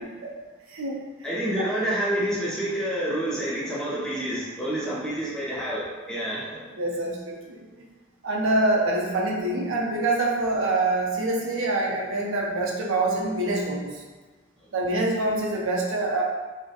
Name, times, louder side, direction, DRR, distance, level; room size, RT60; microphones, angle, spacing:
voice 1, 0.7-1.0 6.8-7.6 8.2-13.9 14.7-16.2, right 2 dB, 80° right, -2 dB, 0.5 m, -25 dB
voice 2, 1.2-6.6, right 1 dB, 5° left, -8 dB, 0.4 m, -28 dB
2.4 x 2.0 x 2.7 m, 1.3 s
head